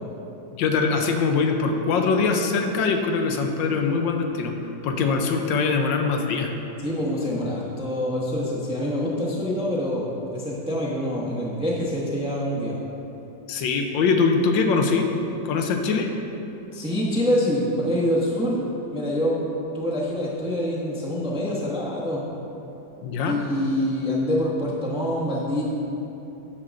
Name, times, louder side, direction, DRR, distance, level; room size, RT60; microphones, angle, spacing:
voice 1, 0.6-4.5 4.8-6.5 13.5-15.1 15.4-16.1 23.0-23.4, left 4 dB, 85° left, 4 dB, 1.4 m, -22 dB
voice 2, 6.8-12.7 16.7-18.6 18.9-19.4 19.7-22.2 23.3-25.6, left 1 dB, 5° right, -5 dB, 0.6 m, -25 dB
8.7 x 3.7 x 6.3 m, 3.0 s
omnidirectional pair, 2.0 m